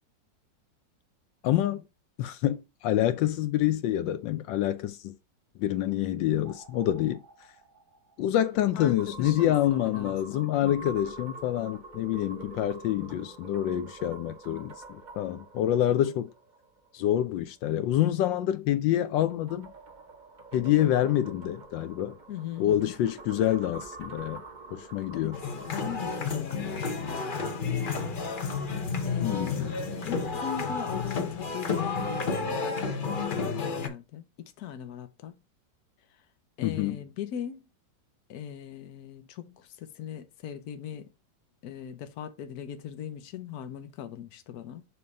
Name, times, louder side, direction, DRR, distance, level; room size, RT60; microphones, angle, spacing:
voice 1, 1.4-1.8 2.2-5.1 5.6-7.2 8.2-16.3 16.9-19.7 20.5-22.2 22.6-24.4 24.7-25.4 29.2-29.8 36.6-37.0, left 12 dB, 85° left, 1.3 m, -27 dB
sound 1, 6.4-17.0 19.0-25.9, right 3 dB, 35° right, 0.7 m, -46 dB
voice 2, 8.7-11.0 12.9-13.3 22.3-23.0 25.1-28.1 29.0-35.4 36.6-37.6 38.3-41.1 41.6-44.9, left 9 dB, 65° left, 1.3 m, -40 dB
sound 2, 25.3-33.9, left 4 dB, 45° left, 0.7 m, -31 dB
6.6 x 2.8 x 5.2 m
omnidirectional pair, 2.0 m